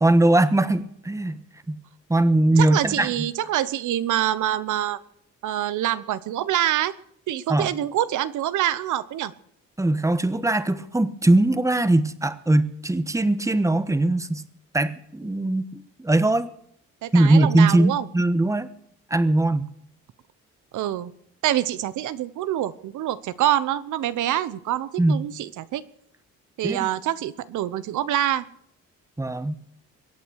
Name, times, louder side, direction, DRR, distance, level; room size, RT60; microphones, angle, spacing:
voice 1, 0.0-1.8 2.1-3.3 7.5-7.7 9.8-14.4 14.7-16.5 17.1-18.7 19.1-19.7 25.0-25.2 26.6-26.9 29.2-29.5, right 2 dB, 10° right, 12 dB, 1.2 m, -21 dB
voice 2, 2.6-5.0 5.4-6.9 7.3-9.3 17.0-18.1 20.7-21.1 21.4-25.8 26.6-28.4, right 12 dB, 80° right, 16 dB, 1.0 m, -25 dB
22.5 x 8.8 x 6.4 m, 0.67 s
cardioid pair, 90°, 30 cm